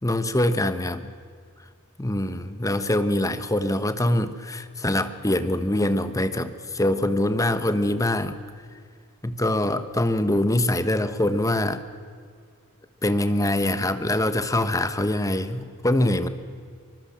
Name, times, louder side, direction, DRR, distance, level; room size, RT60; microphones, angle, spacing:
voice 1, 0.0-1.1 2.0-8.4 9.2-11.8 13.0-16.3, left 1 dB, 15° left, 11 dB, 1.1 m, -24 dB
24.5 x 21.0 x 7.4 m, 2.1 s
head